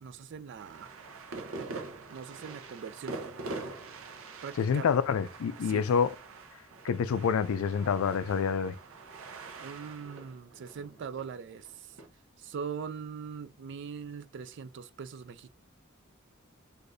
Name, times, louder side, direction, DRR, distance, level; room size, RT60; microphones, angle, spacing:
voice 1, 0.0-0.9 2.1-3.2 4.4-4.9 5.6-5.8 9.6-12.0 12.4-15.6, right 6 dB, 55° right, 0.3 m, -41 dB
sound 1, 0.6-12.1, right 3 dB, 75° right, 0.7 m, -44 dB
voice 2, 4.6-6.1 6.8-8.8, left 6 dB, 75° left, 0.4 m, -27 dB
6.4 x 2.5 x 2.6 m
head